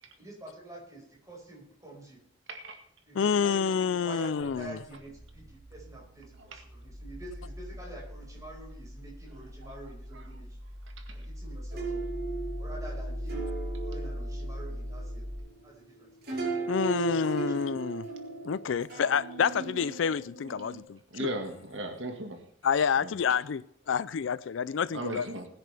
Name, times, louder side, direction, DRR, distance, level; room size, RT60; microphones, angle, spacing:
voice 1, 0.2-2.2 3.0-10.6 11.1-12.0 12.6-13.4 13.9-15.2 15.6-16.1 16.9-17.6, right 2 dB, 20° right, 5.2 m, -46 dB
voice 2, 3.1-4.8 16.7-18.1 18.4-21.3 22.6-25.3, left 6 dB, 80° left, 0.4 m, -28 dB
sound 1, 4.4-15.4, equal, 35° right, 6.1 m, -40 dB
sound 2, 11.7-20.8, right 3 dB, 55° right, 6.5 m, -37 dB
voice 3, 21.1-22.4 23.0-23.1 24.9-25.5, right 1 dB, 80° right, 1.9 m, -36 dB
20.5 x 9.9 x 3.5 m
head